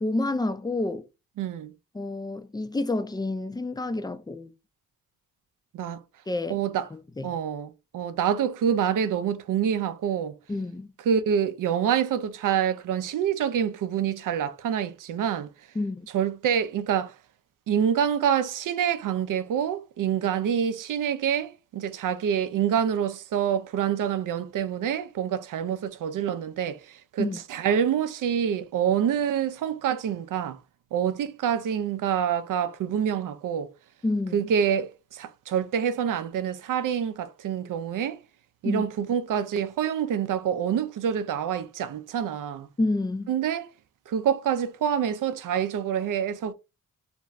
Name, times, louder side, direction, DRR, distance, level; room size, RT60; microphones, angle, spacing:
voice 1, 0.0-1.1 1.9-4.5 6.3-6.6 6.9-7.3 10.5-10.9 15.8-16.0 27.2-27.4 34.0-34.5 38.6-38.8 42.8-43.3, left 2 dB, 10° left, 0.4 m, -29 dB
voice 2, 1.4-1.7 5.7-6.0 6.5-6.9 7.2-10.4 11.1-15.5 16.1-17.1 17.7-30.6 30.9-33.7 34.3-38.2 38.6-42.7 43.3-43.6 44.1-46.5, right 8 dB, 65° right, 0.5 m, -26 dB
2.5 x 2.3 x 3.1 m
cardioid pair, 55°, 35 cm